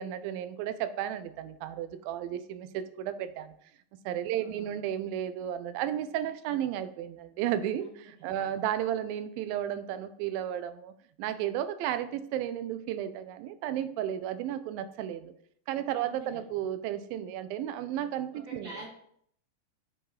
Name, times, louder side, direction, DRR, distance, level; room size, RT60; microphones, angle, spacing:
voice 1, 0.0-3.6 4.1-10.9 11.2-15.3 15.7-18.7, right 11 dB, 85° right, 12 dB, 2.3 m, -33 dB
voice 2, 4.3-4.8 7.8-8.6 16.0-16.4 18.4-18.9, right 2 dB, 65° right, -4 dB, 1.0 m, -47 dB
8.0 x 3.7 x 4.7 m, 0.66 s
omnidirectional pair, 4.1 m